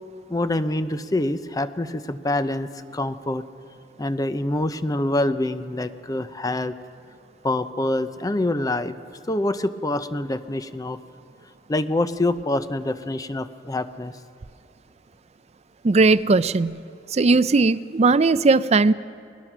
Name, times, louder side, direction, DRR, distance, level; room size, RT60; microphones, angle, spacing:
voice 1, 0.3-3.4 4.0-6.8 7.4-8.9 9.3-11.0 11.7-14.1, left 1 dB, 20° left, 11 dB, 0.6 m, -25 dB
voice 2, 15.8-16.8 17.1-18.9, right 3 dB, 35° right, 15 dB, 0.4 m, -18 dB
21.5 x 20.0 x 6.1 m, 2.3 s
head